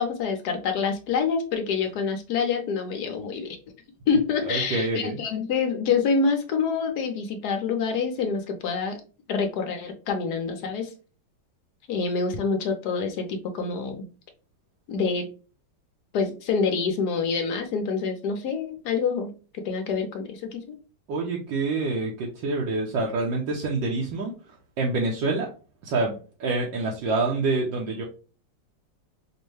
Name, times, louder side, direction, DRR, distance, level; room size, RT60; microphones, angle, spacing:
voice 1, 0.0-3.6 4.1-9.0 9.3-10.9 11.9-14.1 14.9-15.3 16.1-20.8, left 5 dB, 65° left, 5 dB, 1.1 m, -26 dB
voice 2, 4.4-5.2 21.1-25.5 25.8-28.0, right 3 dB, 75° right, -2 dB, 1.4 m, -27 dB
5.2 x 2.1 x 3.1 m, 0.36 s
omnidirectional pair, 2.2 m